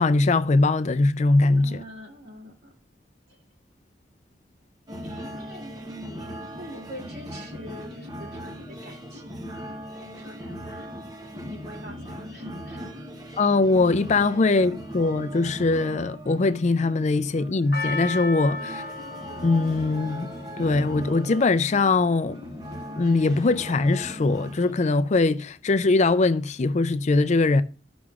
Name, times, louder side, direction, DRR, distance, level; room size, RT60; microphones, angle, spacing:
voice 1, 0.0-1.8 13.4-18.7 19.4-20.3 20.6-22.4 23.0-27.6, left 3 dB, 40° left, 0.4 m, -21 dB
voice 2, 1.5-2.7 3.3-3.4 5.0-11.0 11.5-12.9 18.5-18.9, equal, 65° right, 2.7 m, -44 dB
sound 1, 4.9-24.7, equal, 20° right, 1.0 m, -39 dB
Percussion, 17.7-22.1 22.7-22.8, left 3 dB, 60° left, 0.9 m, -36 dB
13.5 x 6.1 x 2.4 m
head